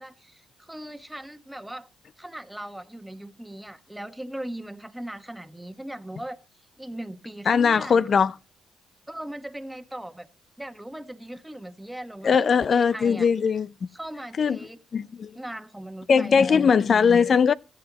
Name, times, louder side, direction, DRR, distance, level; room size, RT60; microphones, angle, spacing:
voice 1, 0.0-1.9 2.2-6.4 6.8-8.1 9.1-10.3 10.6-13.3 13.9-14.8 15.3-16.7, right 1 dB, 5° right, 1.4 m, -39 dB
voice 2, 7.5-8.3 12.2-13.7 14.4-14.6 14.9-15.3 16.1-17.5, left 6 dB, 45° left, 0.5 m, -20 dB
16.5 x 13.5 x 3.0 m
cardioid pair, 90°, 0 cm